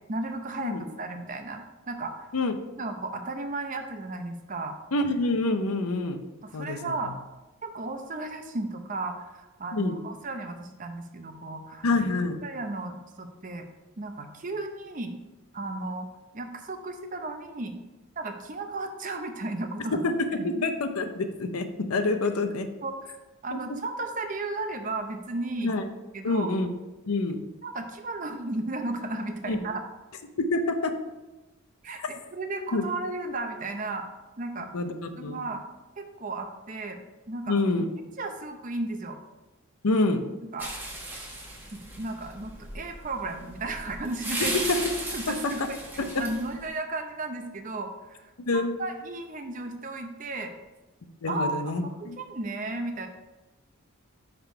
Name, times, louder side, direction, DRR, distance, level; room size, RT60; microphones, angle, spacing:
voice 1, 0.1-2.3 2.8-4.8 6.4-7.1 7.6-11.9 12.4-13.7 14.0-15.2 15.5-16.1 16.3-17.8 18.2-20.0 20.4-20.6 22.8-23.2 23.4-25.8 26.1-26.5 27.6-29.8 31.8-34.1 34.4-34.7 35.2-35.6 36.0-37.0 37.3-37.6 38.2-39.2 40.4-40.7 41.7-44.6 45.1-48.2 48.5-50.5 51.3-53.1, right 2 dB, 35° right, 6 dB, 0.6 m, -34 dB
voice 2, 4.9-6.2 6.5-6.9 9.7-10.0 11.8-12.4 20.0-20.1 20.4-21.6 21.9-22.7 23.5-23.6 25.6-25.9 26.2-26.7 27.1-27.4 29.4-29.6 30.4-30.9 32.0-32.2 32.7-32.8 34.6-35.4 37.5-37.9 39.8-40.2 44.4-44.8 46.0-46.3 48.4-48.7 51.2-52.2, left 2 dB, 90° left, 7 dB, 0.7 m, -27 dB
sound 1, 40.6-46.6, right 1 dB, 10° right, 1.0 m, -36 dB
5.9 x 5.1 x 4.5 m, 1.1 s
head